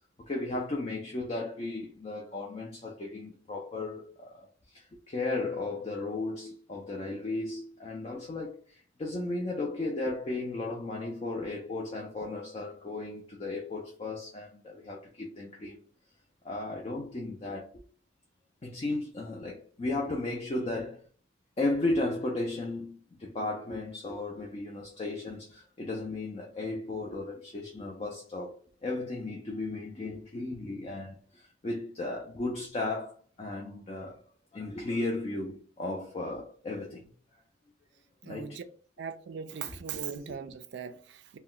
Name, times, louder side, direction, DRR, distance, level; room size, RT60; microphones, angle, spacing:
voice 1, 0.2-15.8 16.4-17.8 18.6-21.0 21.6-28.6 28.8-34.2 34.5-37.1 38.2-38.6, left 2 dB, 30° left, 0.4 m, -35 dB
voice 2, 38.2-38.6 39.0-41.4, right 6 dB, 55° right, 0.3 m, -39 dB
2.3 x 2.1 x 3.7 m
head